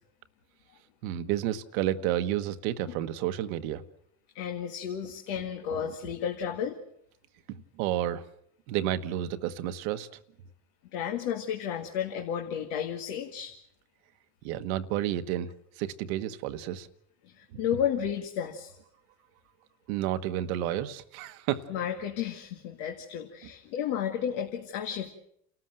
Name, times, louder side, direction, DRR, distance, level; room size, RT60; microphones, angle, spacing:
voice 1, 1.0-3.8 5.8-5.9 7.5-8.3 8.7-10.1 14.4-15.5 15.8-16.9 17.5-17.6 19.9-21.7, right 12 dB, 80° right, 10 dB, 1.3 m, -31 dB
voice 2, 4.3-6.8 10.9-13.5 17.2-18.8 21.7-25.1, left 9 dB, 70° left, 3 dB, 2.1 m, -32 dB
29.0 x 13.5 x 7.7 m, 0.73 s
supercardioid pair, 100°, 41 cm